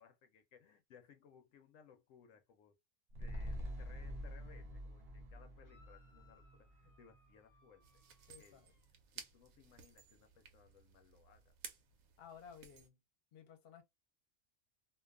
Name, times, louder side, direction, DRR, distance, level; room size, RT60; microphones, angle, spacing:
voice 1, 0.0-2.8 3.2-7.8 8.4-8.7 9.1-11.5, left 7 dB, 75° left, 0.9 m, -64 dB
sound 1, 3.1-7.6 8.0-8.1, equal, 50° right, 0.7 m, -47 dB
sound 2, 5.6-8.9, left 3 dB, 20° left, 0.7 m, -71 dB
sound 3, 7.8-12.9, right 6 dB, 85° right, 1.0 m, -56 dB
voice 2, 8.3-8.7 12.2-13.0 13.3-13.8, left 7 dB, 55° left, 0.9 m, -56 dB
2.5 x 2.3 x 2.3 m
omnidirectional pair, 1.4 m